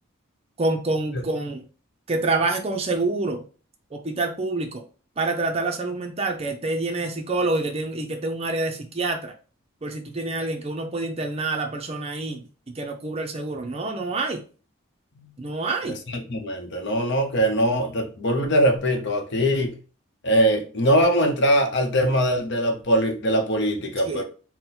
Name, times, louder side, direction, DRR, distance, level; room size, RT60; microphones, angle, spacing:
voice 1, 0.6-1.6 2.1-3.4 3.9-4.8 5.2-9.3 9.8-14.4 15.4-16.0 24.1-24.2, right 2 dB, 30° right, 4 dB, 0.5 m, -27 dB
voice 2, 16.1-19.8 20.2-24.2, equal, 55° left, 5 dB, 0.8 m, -22 dB
4.0 x 2.1 x 4.2 m, 0.37 s
head